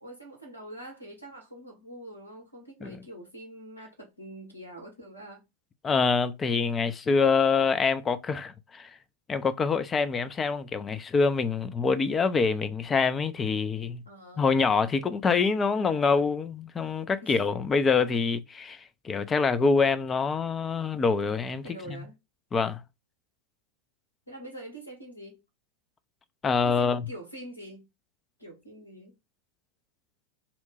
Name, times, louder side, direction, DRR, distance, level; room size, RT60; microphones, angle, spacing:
voice 1, 0.0-5.4 14.0-14.5 17.2-17.4 21.6-22.2 24.3-25.4 26.6-27.9 28.4-29.1, right 1 dB, 85° left, 1.2 m, -44 dB
voice 2, 5.8-8.9 9.3-14.0 14.4-21.6 22.5-22.8 26.4-27.0, left 5 dB, 20° left, 0.4 m, -25 dB
2.8 x 2.1 x 4.0 m
figure-of-eight pair, 90°, 0 cm